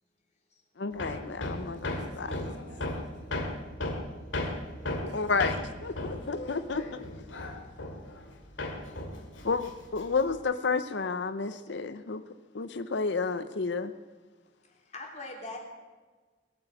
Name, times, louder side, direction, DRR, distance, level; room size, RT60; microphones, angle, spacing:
voice 1, 0.8-2.5 5.1-5.6 5.8-7.0 9.4-12.2 12.5-13.9, left 4 dB, 65° left, 0.6 m, -31 dB
Hammer, 1.0-8.3 8.6-10.3, left 1 dB, 80° left, 2.4 m, -35 dB
voice 2, 1.8-3.6 5.1-5.5 5.9-6.4, right 2 dB, 60° right, 2.3 m, -54 dB
voice 3, 14.7-15.6, left 2 dB, 35° left, 3.4 m, -41 dB
20.0 x 9.0 x 7.7 m
head